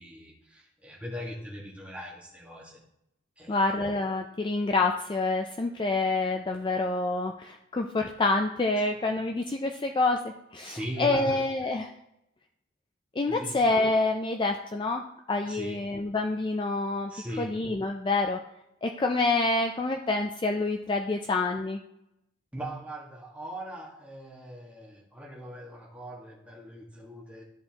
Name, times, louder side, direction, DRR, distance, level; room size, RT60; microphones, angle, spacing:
voice 1, 0.0-2.8 3.4-3.6 10.6-11.4 13.2-13.6 15.4-15.8 17.1-17.5 22.5-27.4, right 1 dB, 5° right, -4 dB, 1.5 m, -40 dB
voice 2, 3.5-10.2 10.5-11.9 13.2-15.0 15.3-17.1 17.4-18.4 18.8-21.8, left 3 dB, 25° left, 4 dB, 0.3 m, -27 dB
12.5 x 4.2 x 2.9 m, 0.83 s
head